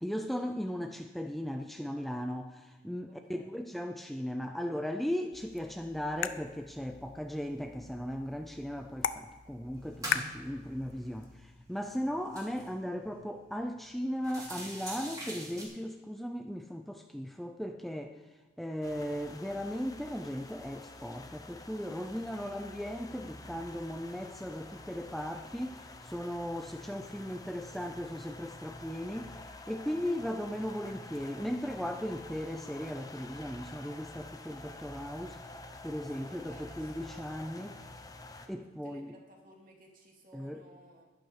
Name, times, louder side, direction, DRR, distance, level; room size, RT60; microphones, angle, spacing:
voice 1, 0.0-18.2 18.6-35.5 35.8-37.8 38.5-39.1 40.3-40.6, equal, ahead, 4 dB, 0.5 m, -37 dB
voice 2, 3.1-3.6 22.4-22.7 27.3-27.9 36.1-37.3 38.4-41.1, right 1 dB, 45° right, 0 dB, 2.5 m, -58 dB
sound 1, 5.3-11.3, left 7 dB, 70° left, 0.6 m, -40 dB
sound 2, 7.8-7.9 8.3-9.1 9.5-13.2 13.6-13.7 14.1-15.7, right 1 dB, 20° right, 3.0 m, -45 dB
sound 3, 18.8-38.5, left 2 dB, 20° left, 0.9 m, -48 dB
12.0 x 12.0 x 4.9 m, 1.3 s
head